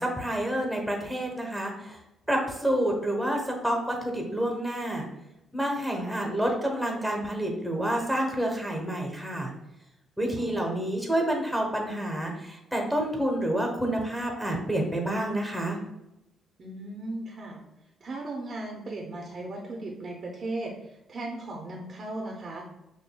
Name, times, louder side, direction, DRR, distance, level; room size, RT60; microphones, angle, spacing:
voice 1, 0.0-2.0 2.3-5.1 5.5-9.5 10.2-15.8, right 1 dB, ahead, 1 dB, 1.0 m, -28 dB
voice 2, 10.3-10.9 16.6-17.6 18.0-22.7, right 2 dB, 45° right, -1 dB, 0.8 m, -37 dB
6.1 x 2.6 x 2.3 m, 0.92 s
cardioid pair, 90°, 0 cm